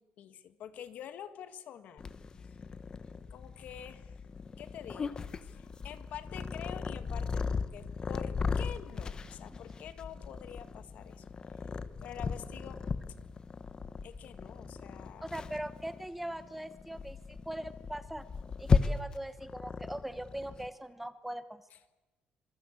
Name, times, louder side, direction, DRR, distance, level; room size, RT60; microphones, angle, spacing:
voice 1, 0.0-2.0 3.3-4.2 4.6-5.1 5.4-11.2 11.5-11.7 12.0-12.8 14.0-15.3 21.7-21.8, left 9 dB, 60° left, 11 dB, 1.6 m, -47 dB
Purr, 2.0-20.7, left 5 dB, 30° left, 1.1 m, -36 dB
voice 2, 15.2-18.3 18.6-21.6, right 1 dB, 5° right, 12 dB, 1.1 m, -40 dB
26.0 x 22.5 x 8.4 m, 1.1 s
cardioid pair, 155°, 3 cm